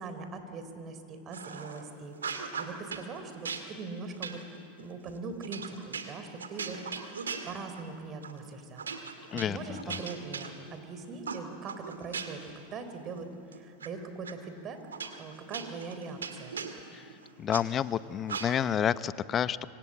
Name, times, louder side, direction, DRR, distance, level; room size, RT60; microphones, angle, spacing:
voice 1, 0.0-4.4 4.8-7.2 7.5-8.9 9.3-14.9 15.2-16.6, right 4 dB, 35° right, 8 dB, 3.9 m, -41 dB
sound 1, 1.3-1.8 2.1-3.1 3.4-7.9 8.2-8.4 8.8-10.9 11.2-12.5 12.9-13.9 14.2-14.3 14.9-17.6 18.3-18.8, right 5 dB, 85° right, 2.1 m, -39 dB
voice 2, 9.3-10.0 16.9-17.1 17.4-19.7, left 9 dB, 35° left, 16 dB, 0.8 m, -30 dB
26.0 x 25.5 x 8.7 m, 2.8 s
hypercardioid pair, 90°, 0 cm